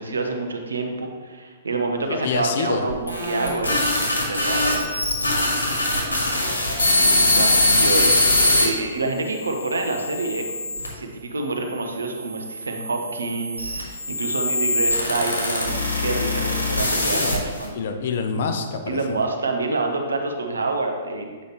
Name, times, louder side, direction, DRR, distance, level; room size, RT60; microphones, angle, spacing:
voice 1, 0.0-4.9 7.0-17.8 18.9-21.3, right 3 dB, 75° right, 3 dB, 0.8 m, -27 dB
voice 2, 2.0-2.8 17.1-17.4 17.7-19.0, left 5 dB, 55° left, 6 dB, 0.7 m, -27 dB
sound 1, 2.9-8.6 9.3-10.9 11.7-17.7, left 2 dB, 80° left, 1.5 m, -22 dB
8.3 x 4.9 x 3.0 m, 1.5 s
figure-of-eight pair, 115°, 0 cm